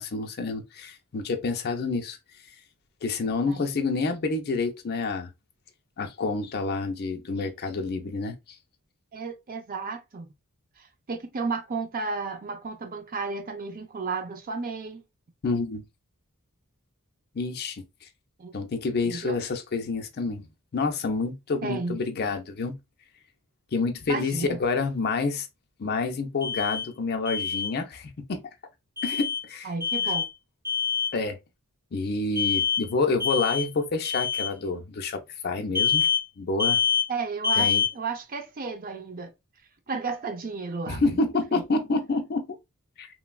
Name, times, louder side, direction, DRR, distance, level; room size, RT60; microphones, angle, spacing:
voice 1, 0.0-2.2 3.0-5.3 6.0-8.6 15.4-15.8 17.3-17.8 18.5-20.5 20.7-22.8 23.7-25.5 25.8-28.4 29.0-29.7 31.1-31.4 31.9-36.1 36.4-36.8 37.6-37.8 40.9-42.4 43.0-43.1, left 3 dB, 45° left, 0.5 m, -28 dB
voice 2, 9.1-10.3 10.8-15.0 18.4-18.6 19.0-19.4 21.6-22.0 24.1-24.6 29.6-30.3 37.1-39.3 39.9-41.0 41.5-41.6, right 4 dB, 40° right, 0.5 m, -33 dB
Alarm, 26.4-26.9 27.3-27.7 29.0-29.4 29.8-30.3 30.6-31.1 32.4-32.9 33.2-33.7 34.0-34.5 35.8-36.2 36.6-37.1 37.4-37.9, left 7 dB, 15° right, 0.8 m, -25 dB
3.1 x 2.2 x 2.2 m
head